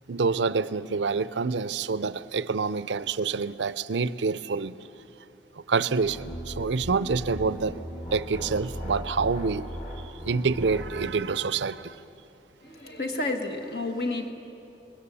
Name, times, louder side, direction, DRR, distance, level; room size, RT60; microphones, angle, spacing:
voice 1, 0.1-4.7 5.7-7.8 8.1-9.7 10.2-12.0, right 4 dB, 80° right, 15 dB, 0.6 m, -27 dB
sound 1, 6.0-11.2, equal, 35° left, 1.9 m, -38 dB
voice 2, 12.6-14.3, left 2 dB, 60° left, 3 dB, 1.7 m, -30 dB
26.5 x 20.5 x 7.0 m, 2.9 s
head